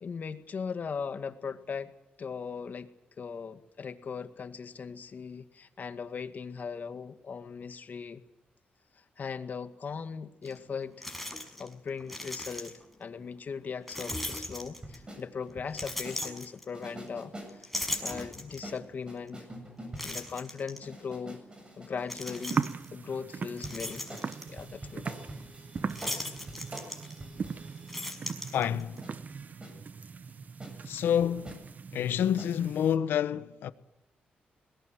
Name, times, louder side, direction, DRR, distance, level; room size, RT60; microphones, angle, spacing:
voice 1, 0.0-1.9 2.2-2.9 3.2-8.2 9.2-11.1 11.6-19.5 20.0-21.4 21.8-25.0, left 6 dB, 55° left, 2.0 m, -39 dB
sound 1, 10.5-10.6 11.0-11.7 12.0-12.9 13.9-15.1 15.7-17.1 17.5-18.8 19.3-19.4 20.0-20.8 22.0-22.9 23.3-24.5 25.9-27.4 27.7-29.0, left 1 dB, 5° left, 5.9 m, -38 dB
sound 2, 14.7-16.2 16.7-18.4 18.6-20.2 20.8-22.4 23.6-28.2 29.0-29.2 29.6-29.8 30.3-30.4 30.6-30.8 31.0-31.6 32.4-32.5, right 1 dB, 25° right, 7.5 m, -46 dB
sound 3, 22.3-33.0, right 5 dB, 50° right, 1.0 m, -39 dB
voice 2, 28.5-29.0 30.9-31.6 31.9-33.7, left 9 dB, 90° left, 1.1 m, -28 dB
25.5 x 20.5 x 7.8 m
cardioid pair, 75°, 4 cm